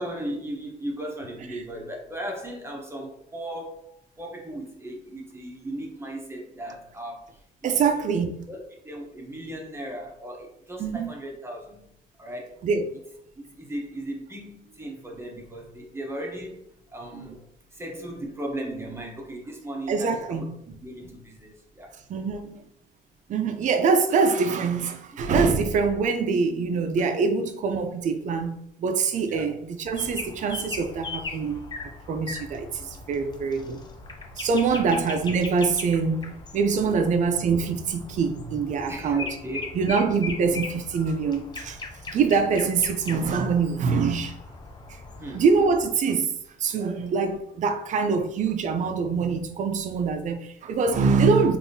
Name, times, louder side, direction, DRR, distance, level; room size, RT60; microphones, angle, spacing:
voice 1, 0.0-7.2 7.6-7.9 8.5-11.8 12.2-12.6 13.4-16.6 16.9-17.4 17.7-21.9 27.0-27.1 29.3-29.5 32.8-32.9 34.7-34.9 36.8-37.1 38.9-39.6 45.2-45.4, right 1 dB, 15° right, 0.7 m, -37 dB
voice 2, 7.6-8.3 10.8-11.1 12.6-12.9 19.9-20.5 22.1-22.6 23.3-31.6 32.1-33.8 34.4-39.2 39.7-41.8 42.1-44.4 45.3-46.3 46.6-51.6, right 5 dB, 45° right, 0.5 m, -24 dB
sound 1, 29.9-45.9, left 3 dB, 25° left, 0.4 m, -39 dB
3.4 x 2.5 x 2.7 m
cardioid pair, 110°, 17 cm